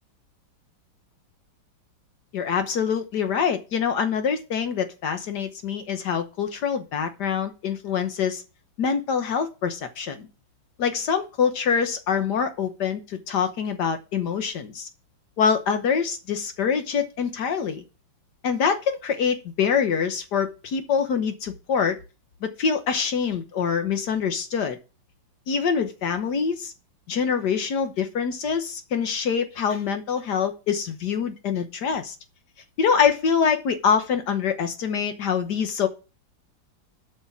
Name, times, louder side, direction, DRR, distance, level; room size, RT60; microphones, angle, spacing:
voice 1, 2.3-8.4 8.8-10.3 10.8-14.9 15.4-17.8 18.4-22.0 22.4-24.8 25.5-26.7 27.1-32.1 32.8-35.9, left 6 dB, 65° left, 1.5 m, -25 dB
8.0 x 5.7 x 7.2 m
omnidirectional pair, 2.1 m